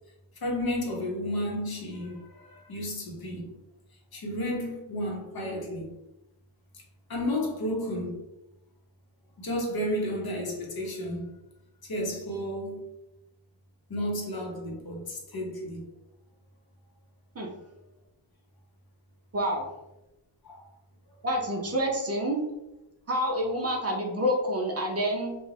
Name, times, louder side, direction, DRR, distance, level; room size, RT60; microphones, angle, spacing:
voice 1, 0.4-3.5 4.1-6.0 6.7-6.8 7.1-8.2 9.4-11.4 11.8-12.8 13.9-15.9 20.4-20.7, left 1 dB, 50° left, 0.8 m, -32 dB
voice 2, 19.3-19.7 21.2-22.4 23.1-25.4, equal, 35° right, 0.5 m, -28 dB
2.4 x 2.2 x 3.2 m
cardioid pair, 85°, 47 cm